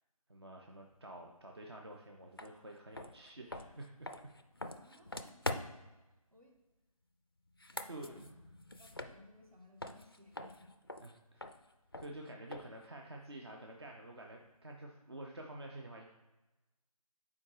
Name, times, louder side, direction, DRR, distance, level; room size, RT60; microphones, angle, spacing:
voice 1, 0.3-4.1 7.9-8.3 11.0-11.5 12.0-16.1, right 1 dB, 45° right, 1 dB, 0.6 m, -49 dB
sound 1, 2.4-2.5 2.9-5.9 7.5-9.5 9.8-12.9, left 1 dB, 40° left, 0.4 m, -44 dB
voice 2, 4.7-5.8 6.3-6.6 7.7-8.3 8.8-10.7, left 1 dB, 70° right, 0 dB, 1.7 m, -61 dB
7.3 x 4.6 x 3.2 m, 1.1 s
figure-of-eight pair, 160°, 19 cm